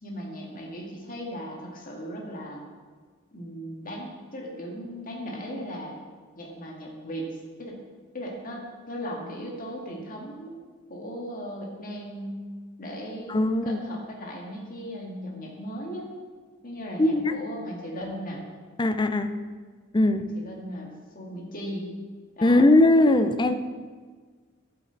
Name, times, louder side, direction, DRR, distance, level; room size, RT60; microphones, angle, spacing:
voice 1, 0.0-2.6 3.3-5.9 6.4-7.8 8.1-10.6 10.9-12.4 12.8-13.4 13.6-16.1 16.6-18.4 20.2-21.9 22.4-22.6, equal, 40° left, -1 dB, 1.8 m, -37 dB
voice 2, 13.3-13.8 17.0-17.3 18.8-19.3 19.9-20.2 22.4-23.5, left 2 dB, 20° left, 9 dB, 0.5 m, -20 dB
12.0 x 7.6 x 4.0 m, 1.5 s
head